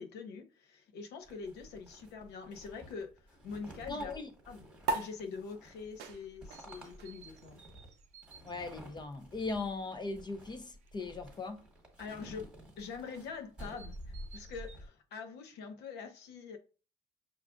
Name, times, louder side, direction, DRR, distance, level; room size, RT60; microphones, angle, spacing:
voice 1, 0.0-4.1 4.5-4.7 4.9-7.6 12.0-16.6, left 5 dB, 80° left, 0.7 m, -44 dB
sound 1, 1.2-14.9, equal, 5° right, 1.3 m, -51 dB
voice 2, 3.9-4.3 8.4-11.6, left 3 dB, 25° left, 0.5 m, -39 dB
sound 2, 4.8-11.6, right 3 dB, 90° right, 0.5 m, -43 dB
sound 3, 6.5-8.7 10.7-10.9 13.6-14.8, right 6 dB, 45° right, 0.5 m, -57 dB
6.2 x 2.3 x 2.4 m
cardioid pair, 110°, 17 cm